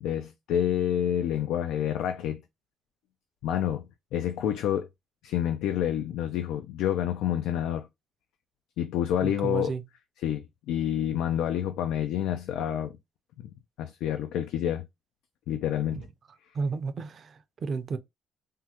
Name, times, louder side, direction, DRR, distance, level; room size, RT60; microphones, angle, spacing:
voice 1, 0.0-2.4 3.4-3.8 4.1-4.9 5.2-7.9 8.8-9.7 10.2-13.0 13.4-13.5 13.8-14.9 15.5-16.1, left 10 dB, 85° left, 0.3 m, -28 dB
voice 2, 9.2-9.8 16.5-18.0, right 4 dB, 45° right, 0.5 m, -32 dB
3.4 x 2.1 x 2.8 m
cardioid pair, 110°, 0 cm